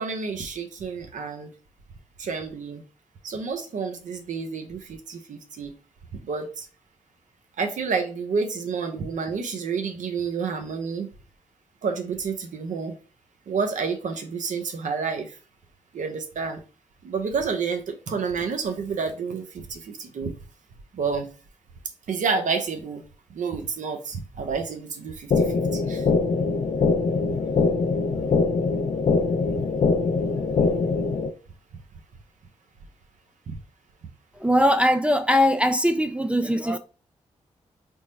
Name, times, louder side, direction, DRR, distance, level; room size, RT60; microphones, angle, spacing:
voice 1, 0.0-1.5 2.2-2.8 3.2-5.7 6.2-6.7 7.6-11.1 11.8-12.9 13.5-15.4 15.9-16.6 17.0-20.3 20.9-21.3 22.1-23.0 23.3-26.1 33.5-33.6, right 5 dB, 70° right, 0.7 m, -29 dB
sound 1, 25.3-31.3, left 4 dB, 55° left, 0.6 m, -23 dB
voice 2, 34.4-36.8, equal, 10° right, 0.4 m, -21 dB
3.5 x 2.0 x 4.2 m
supercardioid pair, 45°, 13 cm